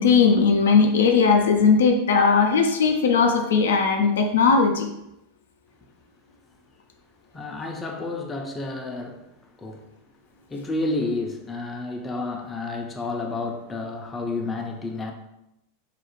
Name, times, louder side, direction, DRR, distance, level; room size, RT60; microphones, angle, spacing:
voice 1, 0.0-4.9, left 5 dB, 85° left, 0.3 m, -18 dB
voice 2, 7.3-9.3 9.6-9.9 10.5-15.1, left 2 dB, 20° left, 0.4 m, -30 dB
2.4 x 2.1 x 2.9 m
hypercardioid pair, 105°, 0 cm